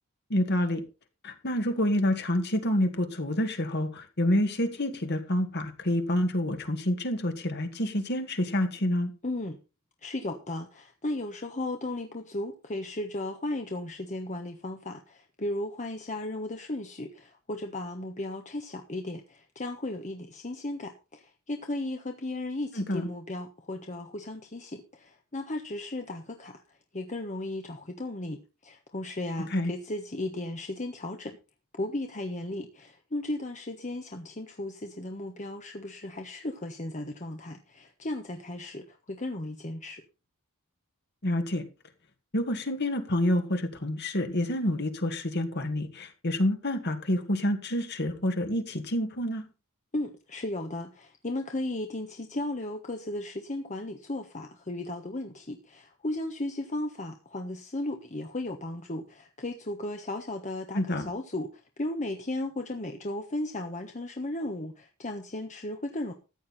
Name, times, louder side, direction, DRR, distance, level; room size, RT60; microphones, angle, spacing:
voice 1, 0.3-0.8 1.2-9.1 22.8-23.1 29.5-29.7 41.2-41.6 42.3-49.4 60.7-61.1, left 1 dB, 50° left, 2.1 m, -28 dB
voice 2, 9.2-9.6 10.0-31.4 31.8-40.0 49.9-66.1, left 1 dB, 35° left, 1.3 m, -35 dB
14.5 x 9.4 x 4.3 m
head